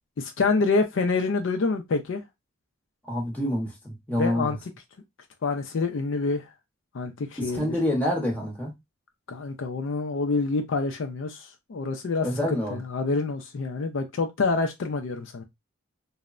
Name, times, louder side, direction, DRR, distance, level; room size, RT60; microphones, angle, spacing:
voice 1, 0.2-2.2 4.1-4.6 5.4-6.5 6.9-7.7 9.3-12.3 12.7-15.4, left 3 dB, 65° left, 0.4 m, -27 dB
voice 2, 3.0-4.6 7.4-8.7 12.2-12.8, left 1 dB, 10° left, 0.8 m, -27 dB
3.1 x 2.0 x 2.3 m
head